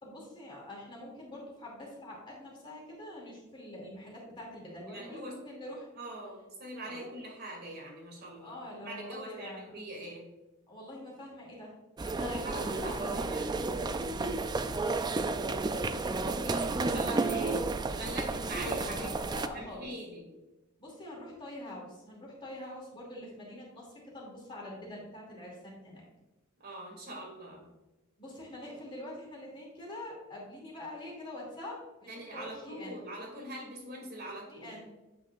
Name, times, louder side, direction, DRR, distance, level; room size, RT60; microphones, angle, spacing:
voice 1, 0.0-5.9 6.8-7.1 8.4-9.7 10.7-11.7 12.0-13.3 15.4-17.6 18.5-19.9 20.8-26.0 28.2-33.0 34.5-34.9, left 1 dB, 25° left, -4 dB, 2.6 m, -45 dB
voice 2, 4.9-5.3 6.0-10.2 12.1-13.5 16.4-17.6 17.9-20.3 26.6-27.6 32.1-34.7, right 1 dB, 50° right, -2 dB, 2.7 m, -43 dB
sound 1, 12.0-19.5, right 3 dB, 20° right, 0.3 m, -32 dB
8.7 x 7.8 x 2.5 m, 1.1 s
head